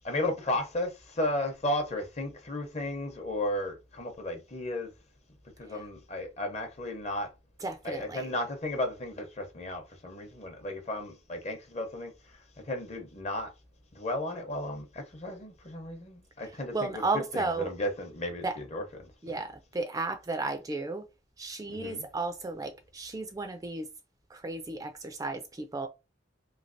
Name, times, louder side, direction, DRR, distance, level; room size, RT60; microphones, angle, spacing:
voice 1, 0.0-4.9 5.6-7.3 7.8-12.1 12.7-13.5 13.9-17.0 17.3-19.4 21.7-22.1, left 1 dB, 40° left, 0.8 m, -34 dB
voice 2, 7.6-8.3 16.7-17.7 18.4-18.6 19.2-21.0 21.4-23.9 24.3-25.9, right 3 dB, 20° right, 0.3 m, -34 dB
3.2 x 2.7 x 2.6 m
head